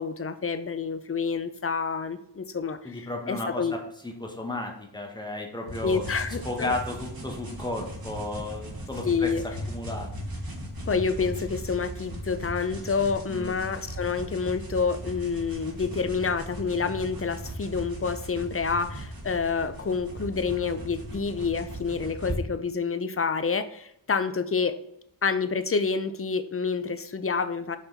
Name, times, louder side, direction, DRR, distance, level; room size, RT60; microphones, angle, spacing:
voice 1, 0.0-3.8 5.8-6.7 9.0-9.4 10.9-24.8 25.2-27.8, left 5 dB, 30° left, 12 dB, 0.5 m, -28 dB
voice 2, 2.8-3.7 4.0-6.0 6.4-9.3 9.7-10.1 13.3-13.5, left 2 dB, 10° left, 2 dB, 1.3 m, -33 dB
sound 1, 5.7-22.4, equal, 50° right, 1.8 m, -38 dB
5.6 x 4.2 x 4.0 m, 0.73 s
wide cardioid pair, 65°, 45 cm